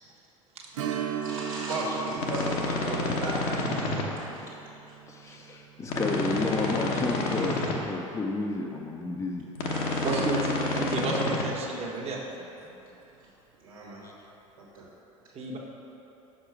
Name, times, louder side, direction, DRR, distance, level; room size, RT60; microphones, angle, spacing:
Strum, 0.7-9.9 10.3-10.4 12.9-13.1 13.5-13.6, right 8 dB, 70° right, 0.6 m, -40 dB
voice 1, 1.2-3.3 4.2-4.3 9.7-10.2 13.6-14.0 14.6-14.8, right 2 dB, 85° right, -6 dB, 1.4 m, -35 dB
sound 1, 2.2-4.0 5.9-7.7 9.6-11.4, left 3 dB, 60° left, 1.0 m, -29 dB
voice 2, 3.9-4.6 5.1-9.5 12.1-12.2 14.0-14.1, left 2 dB, 15° left, 0 dB, 0.6 m, -32 dB
voice 3, 10.0-10.4 10.7-12.2 15.3-15.6, right 3 dB, 35° right, -2 dB, 1.1 m, -31 dB
6.2 x 5.0 x 4.8 m, 3.0 s
hypercardioid pair, 70°, 17 cm